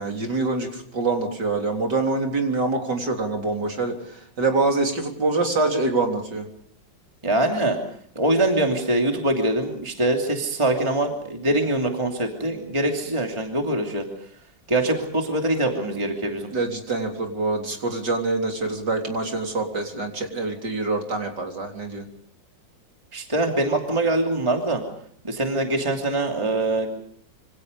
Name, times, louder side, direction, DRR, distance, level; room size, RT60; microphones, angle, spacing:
voice 1, 0.0-6.5 16.5-22.1, right 3 dB, 65° right, 3 dB, 4.3 m, -25 dB
voice 2, 7.2-7.8 8.1-14.0 14.7-16.5 23.1-24.8 25.2-26.9, right 1 dB, 15° right, 2 dB, 2.8 m, -23 dB
27.0 x 26.0 x 5.3 m, 0.62 s
omnidirectional pair, 2.0 m